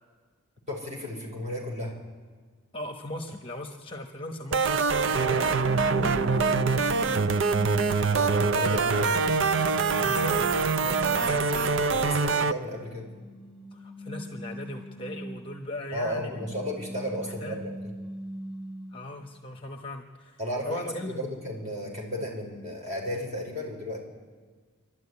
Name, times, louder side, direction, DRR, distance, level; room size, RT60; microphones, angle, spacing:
voice 1, 0.7-2.0 5.3-5.6 8.0-9.5 11.9-13.1 15.9-17.9 20.4-24.0, left 1 dB, 30° right, -2 dB, 5.0 m, -34 dB
voice 2, 2.7-7.2 10.0-11.5 13.7-16.5 17.2-17.6 18.9-20.4 20.6-21.2, left 1 dB, 25° left, 4 dB, 1.0 m, -38 dB
sound 1, 4.5-12.5, right 4 dB, 55° right, 0.5 m, -24 dB
sound 2, 5.6-7.8 8.4-11.6 12.7-15.7 16.1-19.1, equal, ahead, 1.6 m, -40 dB
26.5 x 12.5 x 9.7 m, 1.5 s
head